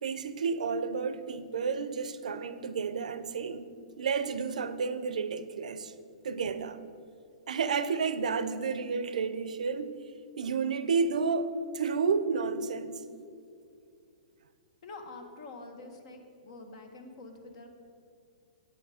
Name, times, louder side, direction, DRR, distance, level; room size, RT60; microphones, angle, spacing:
voice 1, 0.0-3.7 4.0-5.9 6.2-6.8 7.5-10.0 10.4-13.0, right 5 dB, 85° right, 0.6 m, -31 dB
voice 2, 14.8-17.7, left 3 dB, 55° left, 1.4 m, -46 dB
8.8 x 8.5 x 4.9 m
hypercardioid pair, 145°, 4 cm